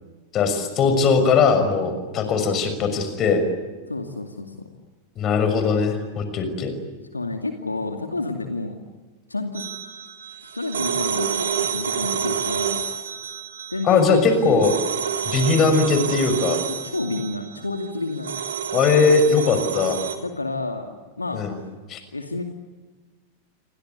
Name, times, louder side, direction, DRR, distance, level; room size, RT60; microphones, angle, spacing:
voice 1, 0.3-3.5 5.2-6.7 13.8-14.7 15.2-16.6 18.7-20.0 21.3-21.5 21.9-22.0, left 4 dB, 30° left, 8 dB, 6.3 m, -19 dB
voice 2, 3.9-4.5 7.1-8.8 9.3-9.6 10.5-12.8 13.7-14.5 16.8-18.4 20.2-20.9 21.2-21.4 22.1-22.4, left 2 dB, 80° left, 5 dB, 2.4 m, -29 dB
sound 1, 9.6-20.2, right 8 dB, 65° right, 3.0 m, -29 dB
28.5 x 24.5 x 8.4 m, 1.3 s
figure-of-eight pair, 90°, 0 cm